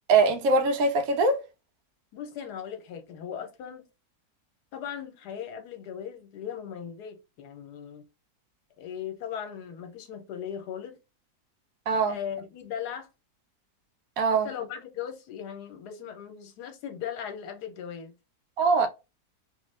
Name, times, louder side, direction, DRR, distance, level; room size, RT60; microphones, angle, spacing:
voice 1, 0.1-1.4 11.9-12.2 14.2-14.5 18.6-18.9, right 4 dB, 70° right, 1.1 m, -22 dB
voice 2, 2.1-3.9 4.7-8.1 8.8-11.0 12.1-13.1 14.3-18.1, left 8 dB, 80° left, 1.3 m, -38 dB
3.2 x 2.3 x 3.2 m
omnidirectional pair, 1.7 m